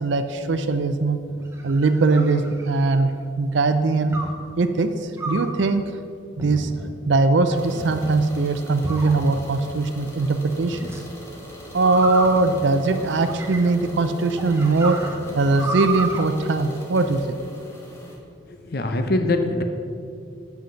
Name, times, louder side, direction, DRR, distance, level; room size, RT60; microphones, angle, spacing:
voice 1, 0.0-1.2 1.6-3.1 3.4-4.2 4.6-5.8 6.4-6.7 7.1-10.8 11.7-15.0 15.4-17.4, right 3 dB, 70° right, 9 dB, 0.5 m, -21 dB
sound 1, 1.3-3.1 4.1-4.5 5.2-5.6 6.4-6.9 7.5-8.1 8.8-9.6 10.7-11.0 11.8-13.9 14.4-16.2, right 2 dB, 15° right, 0.8 m, -31 dB
sound 2, 7.5-18.2, equal, 15° left, 1.1 m, -41 dB
voice 2, 18.5-19.6, left 2 dB, 50° left, 6 dB, 0.7 m, -23 dB
8.1 x 5.8 x 6.4 m, 2.4 s
head